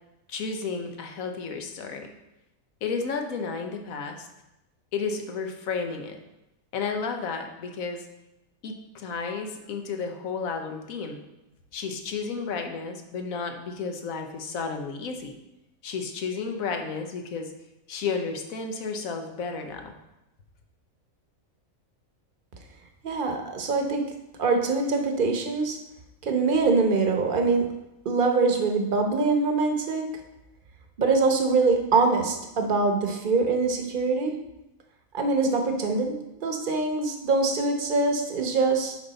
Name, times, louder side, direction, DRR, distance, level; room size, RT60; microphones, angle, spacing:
voice 1, 0.3-2.1 2.8-4.3 4.9-6.2 6.7-8.1 8.6-11.2 11.7-15.3 15.8-17.5 17.9-20.0, left 5 dB, 85° left, 4 dB, 1.3 m, -32 dB
voice 2, 23.0-24.0 24.4-25.8 26.2-27.7 28.0-30.0 31.0-34.3 35.1-36.1 36.4-39.0, right 3 dB, 45° right, 3 dB, 1.0 m, -23 dB
7.8 x 5.4 x 4.0 m, 0.91 s
omnidirectional pair, 1.4 m